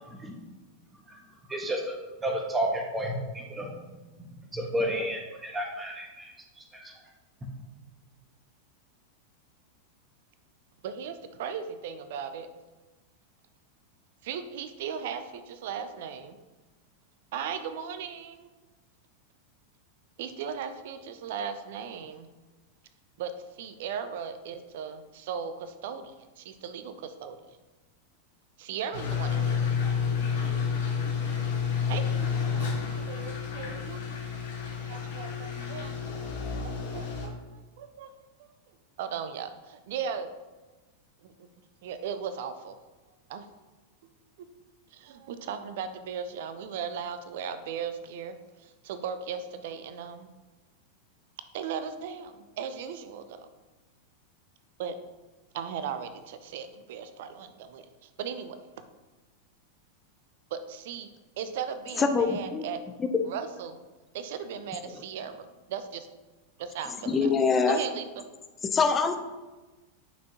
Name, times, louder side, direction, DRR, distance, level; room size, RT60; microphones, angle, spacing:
voice 1, 1.5-1.9 2.2-3.7 4.2-6.3 6.7-6.9, equal, 15° right, 1 dB, 1.3 m, -31 dB
voice 2, 10.8-12.5 14.2-16.4 17.3-18.5 20.2-22.3 23.2-27.4 28.6-29.6 31.5-31.6 31.9-34.1 34.9-36.4 36.6-38.2 39.0-40.3 41.2-41.5 41.8-42.7 43.3-43.5 44.4-44.5 44.9-48.4 48.6-50.3 51.5-53.5 54.8-55.0 55.5-58.8 60.5-61.1 61.4-62.8 63.2-63.8 64.1-66.1 66.6-67.3 67.7-68.2, right 7 dB, 55° right, 10 dB, 0.5 m, -37 dB
sound 1, 28.9-37.3, left 6 dB, 55° left, 1.7 m, -30 dB
voice 3, 62.0-62.6 63.0-63.1 64.9-65.0 67.1-67.8 68.6-69.2, left 5 dB, 20° left, 7 dB, 0.7 m, -24 dB
9.4 x 5.8 x 2.9 m, 1.2 s
figure-of-eight pair, 90°, 0 cm